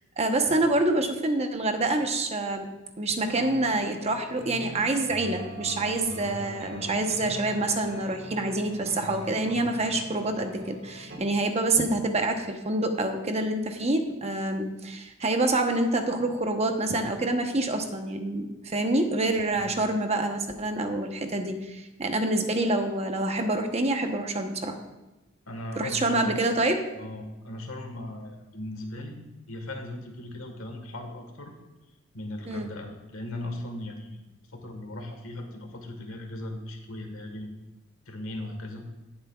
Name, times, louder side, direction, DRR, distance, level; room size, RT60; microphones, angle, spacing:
voice 1, 0.2-2.7 3.0-24.8 25.8-26.8 32.5-32.7, right 2 dB, 30° right, 5 dB, 0.9 m, -27 dB
sound 1, 3.3-11.2, left 1 dB, 60° right, 2.2 m, -41 dB
voice 2, 25.5-26.4 27.0-29.2 29.5-31.5 32.1-34.2 34.5-37.5 38.0-38.9, left 1 dB, 90° left, 5 dB, 1.5 m, -38 dB
17.5 x 7.4 x 2.4 m, 1.0 s
head